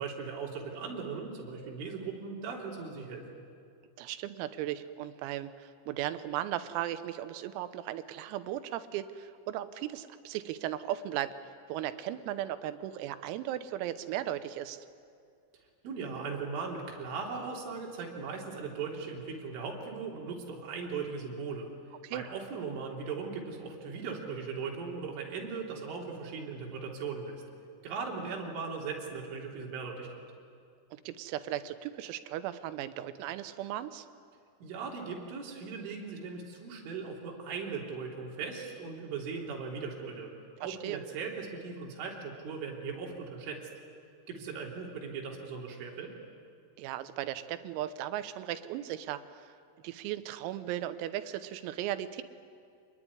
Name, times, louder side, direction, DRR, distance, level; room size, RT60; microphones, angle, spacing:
voice 1, 0.0-3.2 15.8-21.7 22.1-27.4 27.8-30.2 34.6-40.3 40.6-43.7 44.3-46.1, right 5 dB, 65° right, -1 dB, 5.8 m, -38 dB
voice 2, 4.0-14.9 22.0-22.3 30.9-34.1 40.6-41.0 46.8-49.6 49.8-52.2, right 12 dB, 85° right, 11 dB, 3.7 m, -37 dB
27.0 x 21.0 x 9.8 m, 2.4 s
omnidirectional pair, 6.0 m